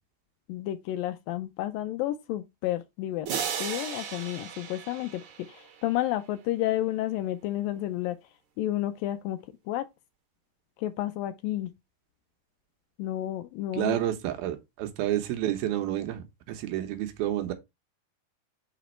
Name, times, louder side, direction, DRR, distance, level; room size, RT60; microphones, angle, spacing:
voice 1, 0.5-3.3 3.6-8.2 8.6-9.4 9.7-9.8 10.8-11.7 13.0-14.0, left 14 dB, 80° left, 2.1 m, -31 dB
sound 1, 3.3-5.9, right 7 dB, 60° right, 2.6 m, -35 dB
voice 2, 13.7-17.5, right 12 dB, 80° right, 2.8 m, -30 dB
5.8 x 5.1 x 4.4 m
omnidirectional pair, 4.4 m